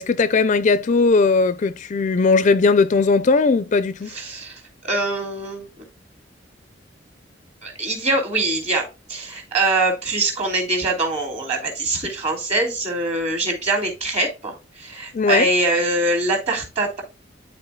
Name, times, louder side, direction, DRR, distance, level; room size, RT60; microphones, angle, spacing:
voice 1, 0.0-4.1 15.1-15.5, left 4 dB, 40° left, 0.4 m, -18 dB
voice 2, 4.1-5.8 7.6-17.0, right 2 dB, 35° right, 2.7 m, -23 dB
11.5 x 4.2 x 2.2 m
head